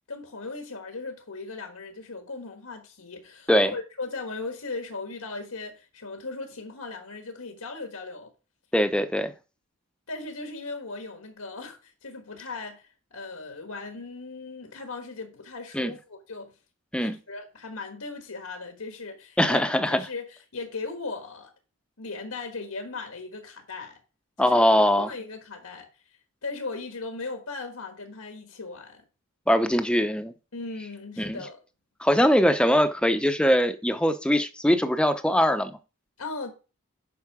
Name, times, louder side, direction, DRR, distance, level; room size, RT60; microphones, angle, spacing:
voice 1, 0.1-8.3 10.1-16.6 17.0-21.5 22.0-24.0 24.4-24.7 25.0-25.9 26.4-29.0 30.5-31.6 36.2-36.5, left 3 dB, 85° left, 1.5 m, -38 dB
voice 2, 8.7-9.3 15.7-15.9 16.9-17.1 19.4-20.0 24.4-25.1 29.5-30.3 31.2-31.4 32.0-35.8, equal, 5° left, 0.6 m, -22 dB
8.4 x 5.5 x 4.8 m
head